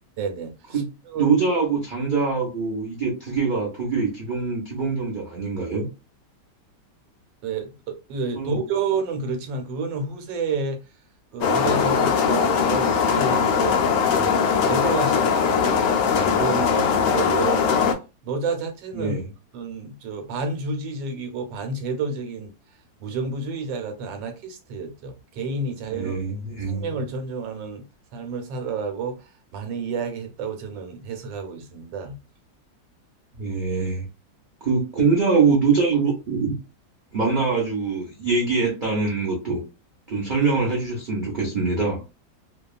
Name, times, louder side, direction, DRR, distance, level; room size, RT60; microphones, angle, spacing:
voice 1, 0.2-1.3 7.4-10.8 11.3-15.7 16.1-17.7 18.2-19.2 19.5-22.5 23.0-26.2 26.6-27.8 28.1-32.2, right 4 dB, 90° right, 1.3 m, -30 dB
voice 2, 0.7-5.8 8.3-8.6 18.9-19.3 25.9-26.8 33.3-34.1 34.6-36.5 37.1-39.6 40.1-42.0, right 4 dB, 60° right, 0.5 m, -23 dB
sound 1, 11.4-17.9, left 6 dB, 90° left, 0.7 m, -20 dB
2.8 x 2.3 x 2.3 m
omnidirectional pair, 2.0 m